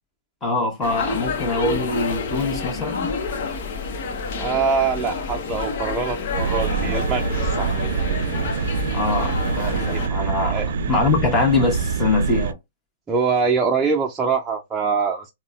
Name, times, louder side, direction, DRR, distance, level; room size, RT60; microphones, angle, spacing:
voice 1, 0.4-3.1 8.9-12.6, left 3 dB, 20° left, 1.1 m, -23 dB
sound 1, 0.8-10.1, left 4 dB, 55° left, 0.8 m, -28 dB
voice 2, 4.4-7.7 9.9-10.0 10.5-10.7 13.1-15.3, right 5 dB, 15° right, 0.5 m, -23 dB
sound 2, 6.3-12.5, right 6 dB, 70° right, 0.3 m, -25 dB
3.8 x 2.1 x 2.3 m
hypercardioid pair, 135°, 0 cm